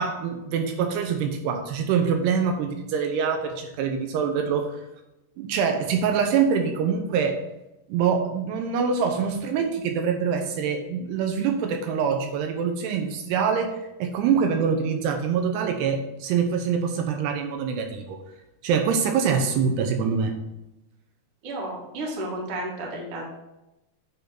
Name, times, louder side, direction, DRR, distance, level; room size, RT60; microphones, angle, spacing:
voice 1, 0.0-4.8 5.4-7.4 7.9-18.2 18.6-20.3, right 6 dB, 80° right, 5 dB, 2.8 m, -25 dB
voice 2, 21.4-23.3, right 1 dB, 45° right, -2 dB, 2.0 m, -32 dB
9.5 x 3.7 x 5.8 m, 0.95 s
omnidirectional pair, 4.8 m